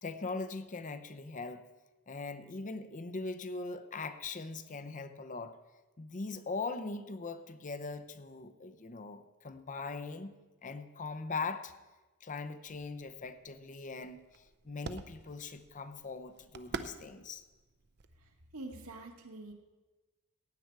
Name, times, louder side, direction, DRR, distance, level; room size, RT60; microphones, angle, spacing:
voice 1, 0.0-1.6 2.1-5.6 6.0-11.7 12.2-17.4, left 3 dB, 35° left, 11 dB, 0.7 m, -41 dB
sound 1, 12.7-19.0, right 4 dB, 50° right, 0.6 m, -48 dB
voice 2, 18.2-19.5, right 2 dB, 70° right, 3 dB, 1.7 m, -46 dB
15.5 x 9.2 x 4.7 m, 1.2 s
head